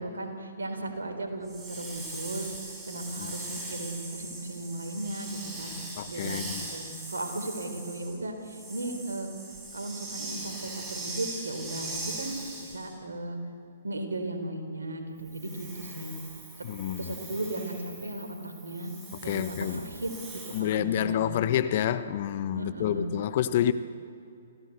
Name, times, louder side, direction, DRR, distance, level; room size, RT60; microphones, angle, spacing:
voice 1, 0.0-5.7 6.1-9.3 9.7-12.3 12.6-13.4 13.8-16.1 16.6-16.7 17.0-18.9 19.2-21.4 22.5-23.1, right 2 dB, 80° right, 5 dB, 4.0 m, -36 dB
Hiss, 1.4-12.9 15.2-20.6, right 2 dB, 15° right, 5.8 m, -41 dB
voice 2, 6.0-6.6 16.6-17.2 19.3-19.8 20.5-23.7, left 10 dB, 45° left, 13 dB, 1.1 m, -28 dB
27.5 x 16.5 x 8.1 m, 2.5 s
figure-of-eight pair, 125°, 0 cm